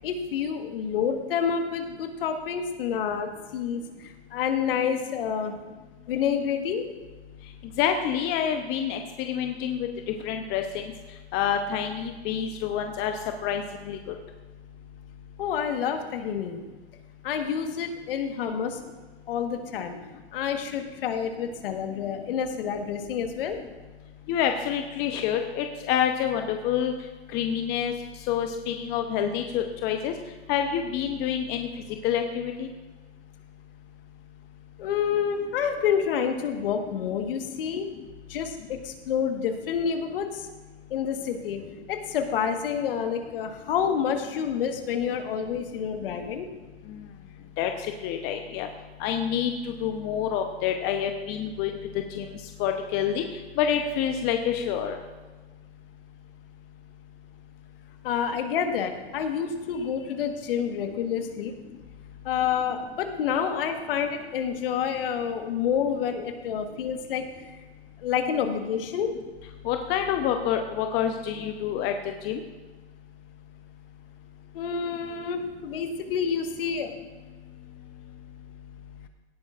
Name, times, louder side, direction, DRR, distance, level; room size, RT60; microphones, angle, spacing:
voice 1, 0.0-5.6 6.1-6.9 15.4-16.6 17.2-18.8 19.3-20.0 20.3-23.6 34.8-37.9 38.3-40.5 40.9-41.6 41.9-46.5 58.0-61.5 62.2-67.6 68.0-69.1 74.5-76.9, left 7 dB, 60° left, 6 dB, 1.5 m, -28 dB
voice 2, 7.8-9.9 10.2-10.6 11.3-13.1 13.4-14.1 24.3-26.9 27.3-27.9 28.3-30.1 30.5-31.7 32.0-32.7 47.6-48.7 49.0-49.5 49.8-51.7 52.1-52.3 52.6-53.2 53.6-55.0 69.6-71.9 72.2-72.4, left 9 dB, 30° left, 5 dB, 0.8 m, -27 dB
17.5 x 11.5 x 2.5 m, 1.3 s
hypercardioid pair, 120°, 32 cm